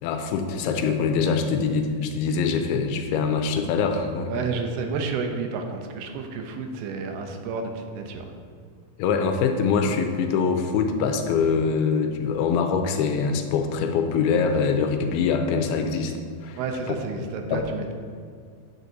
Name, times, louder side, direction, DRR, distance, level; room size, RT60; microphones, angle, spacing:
voice 1, 0.0-4.3 9.0-16.1 16.4-16.6 16.9-17.0 17.5-17.6, left 5 dB, 85° left, 6 dB, 2.5 m, -24 dB
voice 2, 4.3-8.3 16.6-17.9, right 4 dB, 85° right, 4 dB, 2.8 m, -30 dB
9.0 x 8.1 x 2.7 m, 2.1 s
omnidirectional pair, 4.5 m